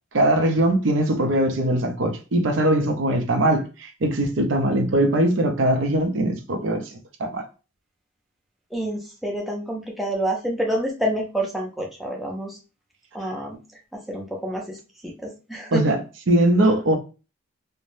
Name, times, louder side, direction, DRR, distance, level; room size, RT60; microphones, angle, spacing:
voice 1, 0.1-7.5 15.7-16.0 16.3-17.0, right 1 dB, 75° right, 0.5 m, -21 dB
voice 2, 8.7-12.6 13.1-13.6 13.9-14.8 15.0-15.9, right 1 dB, ahead, 0.5 m, -28 dB
3.2 x 2.0 x 2.6 m
head